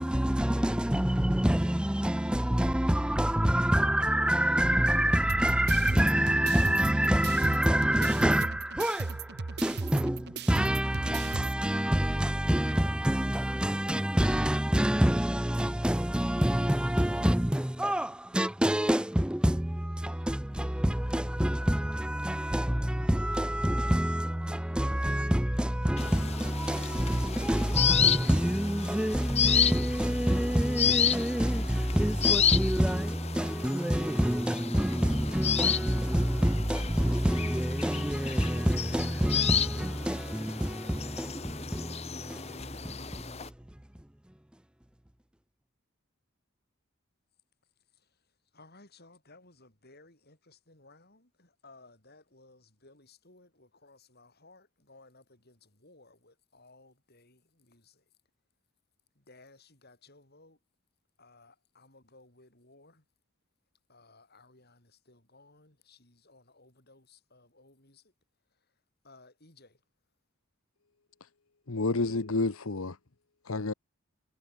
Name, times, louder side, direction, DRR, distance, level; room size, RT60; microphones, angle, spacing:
voice 1, 0.0-43.5, equal, 5° right, 0.5 m, -27 dB
sound 1, 5.3-11.5, right 3 dB, 50° right, 0.8 m, -37 dB
sound 2, 26.0-43.5, left 8 dB, 30° left, 0.9 m, -31 dB
voice 2, 47.9-58.1 59.1-60.6 61.2-63.1 63.9-68.1 68.5-69.8, left 2 dB, 50° left, 8.0 m, -59 dB
voice 3, 71.7-73.0 73.4-73.7, left 3 dB, 80° left, 1.2 m, -30 dB
head